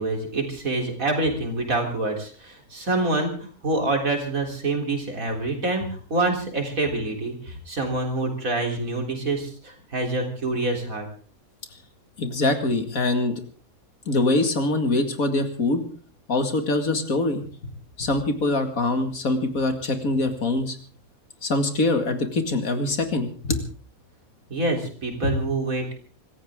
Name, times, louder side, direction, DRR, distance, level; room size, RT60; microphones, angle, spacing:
voice 1, 0.0-11.1 24.5-25.9, right 2 dB, 70° right, 2 dB, 4.1 m, -26 dB
voice 2, 12.2-13.4 14.1-15.8 16.3-17.4 18.0-20.8 21.4-23.6 25.2-25.3, left 2 dB, 70° left, 6 dB, 2.5 m, -23 dB
25.5 x 14.5 x 3.7 m, 0.41 s
omnidirectional pair, 1.5 m